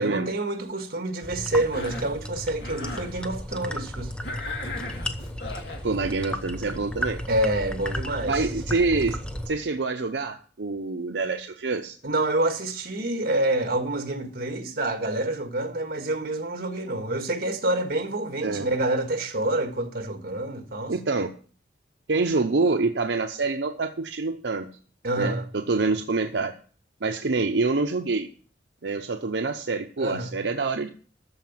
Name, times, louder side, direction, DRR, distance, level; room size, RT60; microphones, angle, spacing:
voice 1, 0.0-4.3 7.3-8.5 12.0-20.9 25.0-25.5 30.0-30.3, right 1 dB, 60° right, 1.7 m, -27 dB
sound 1, 1.2-9.5, equal, 5° left, 0.9 m, -34 dB
Cough, 1.6-2.2 2.6-3.1 4.2-5.8, left 2 dB, 65° left, 2.1 m, -36 dB
voice 2, 5.8-7.2 8.3-9.2 9.5-12.0 18.4-18.7 20.9-21.3 22.1-24.7 25.2-26.5 27.0-28.3 28.8-30.9, right 3 dB, 85° right, 0.7 m, -26 dB
13.5 x 4.9 x 7.2 m
head